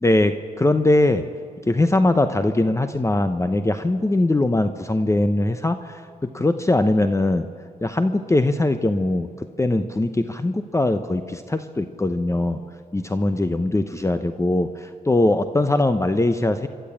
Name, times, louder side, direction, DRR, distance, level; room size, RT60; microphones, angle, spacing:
voice 1, 0.0-1.2 1.7-7.5 7.8-12.6 12.9-16.7, left 2 dB, 20° left, 9 dB, 0.9 m, -21 dB
27.0 x 12.5 x 8.6 m, 2.2 s
cardioid pair, 85°, 16 cm